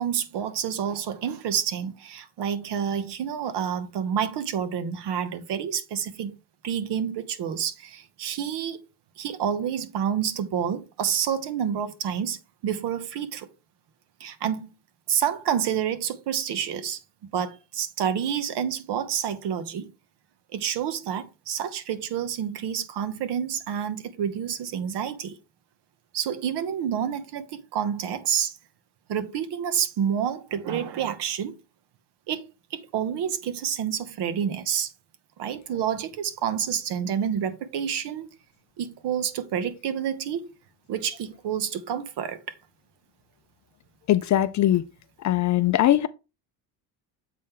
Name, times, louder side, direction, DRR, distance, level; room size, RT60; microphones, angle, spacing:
voice 1, 0.0-6.4 6.6-8.8 9.2-13.5 14.2-14.7 15.1-19.9 20.5-25.4 26.1-28.6 29.1-31.6 32.3-32.4 32.7-34.9 35.4-38.3 38.8-40.5 40.9-42.4, right 8 dB, 60° right, 1.1 m, -28 dB
voice 2, 44.1-44.8 45.2-46.1, left 13 dB, 40° left, 0.4 m, -21 dB
7.4 x 4.4 x 3.7 m
cardioid pair, 130°, 46 cm